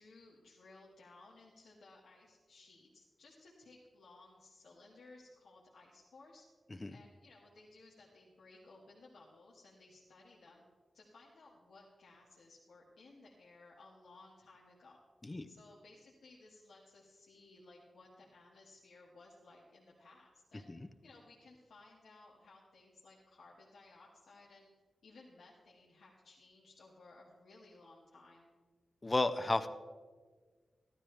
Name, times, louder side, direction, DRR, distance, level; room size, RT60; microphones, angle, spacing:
voice 1, 0.0-6.4 6.9-10.6 10.9-15.0 15.5-20.7 21.0-24.7 25.0-28.5, left 2 dB, 90° left, -5 dB, 1.8 m, -59 dB
voice 2, 29.0-29.7, left 2 dB, 25° left, 10 dB, 0.6 m, -32 dB
14.5 x 12.5 x 3.4 m, 1.5 s
wide cardioid pair, 95°, 0 cm